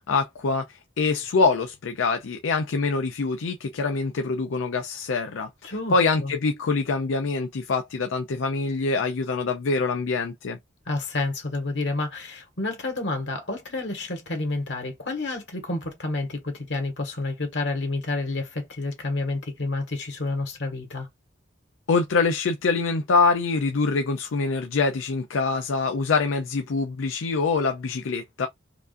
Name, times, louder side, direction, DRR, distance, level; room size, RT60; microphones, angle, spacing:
voice 1, 0.1-10.6 21.9-28.5, left 4 dB, 85° left, 0.5 m, -25 dB
voice 2, 5.6-5.9 6.2-6.3 10.9-21.1, left 2 dB, 65° left, 1.6 m, -29 dB
4.7 x 2.4 x 2.6 m
head